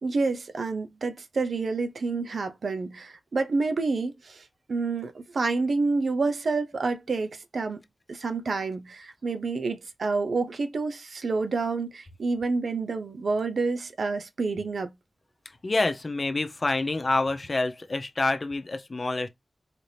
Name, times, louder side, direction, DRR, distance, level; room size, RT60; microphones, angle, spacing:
voice 1, 0.0-7.8 8.1-14.9, right 3 dB, 90° right, 0.6 m, -28 dB
voice 2, 15.6-19.3, left 2 dB, 45° left, 0.7 m, -27 dB
4.1 x 2.8 x 3.3 m
wide cardioid pair, 80°, 0 cm